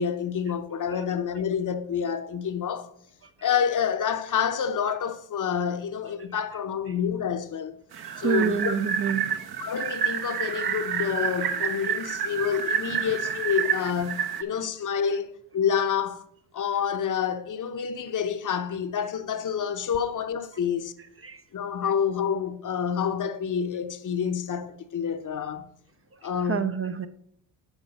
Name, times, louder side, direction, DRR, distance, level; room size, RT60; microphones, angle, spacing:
voice 1, 0.0-2.9 3.4-7.7 8.2-8.7 9.6-16.2 16.5-20.9 21.5-25.7 26.2-26.7, left 7 dB, 40° left, 0.7 m, -28 dB
sound 1, 7.9-14.4, right 8 dB, 50° right, 0.8 m, -29 dB
voice 2, 8.0-9.4 21.2-21.4 26.5-27.1, right 7 dB, 30° right, 0.5 m, -28 dB
7.2 x 4.8 x 5.1 m
supercardioid pair, 60°, 48 cm